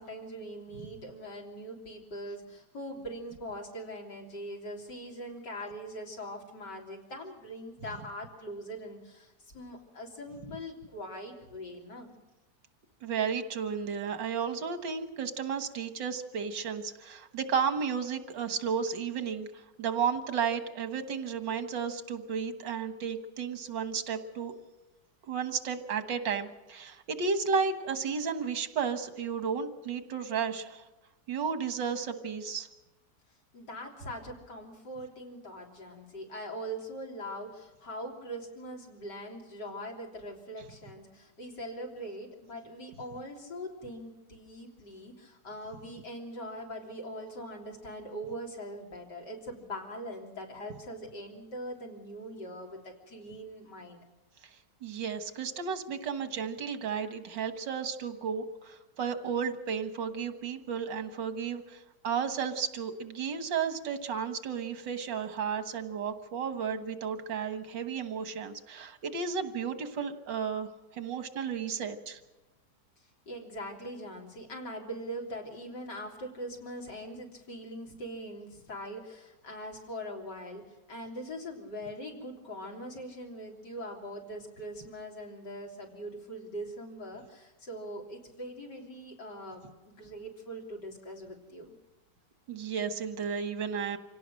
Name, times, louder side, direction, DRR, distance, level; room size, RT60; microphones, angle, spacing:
voice 1, 0.0-12.1 33.5-54.0 73.3-91.7, equal, 70° left, 0 dB, 3.9 m, -42 dB
voice 2, 13.0-24.5 25.3-30.8 31.3-32.7 54.4-54.6 54.8-72.2 92.5-94.0, right 6 dB, 85° right, 9 dB, 2.1 m, -33 dB
26.0 x 17.5 x 6.4 m, 1.1 s
omnidirectional pair, 1.9 m